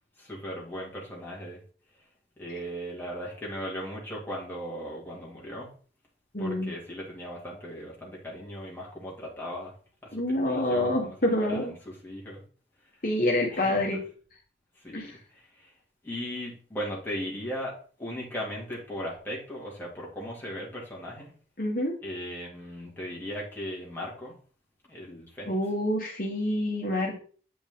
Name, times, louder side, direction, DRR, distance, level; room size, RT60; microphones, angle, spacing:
voice 1, 0.2-1.6 2.4-5.7 6.4-9.7 10.0-12.4 13.5-13.8 14.8-15.7 16.0-17.7 18.0-21.3 22.0-24.4 24.9-25.6, equal, 10° left, -4 dB, 2.3 m, -38 dB
voice 2, 6.3-6.7 10.1-11.7 13.0-14.0 14.9-15.2 21.6-22.0 25.5-27.2, left 1 dB, 50° left, -1 dB, 1.3 m, -27 dB
8.5 x 5.1 x 3.6 m, 0.42 s
head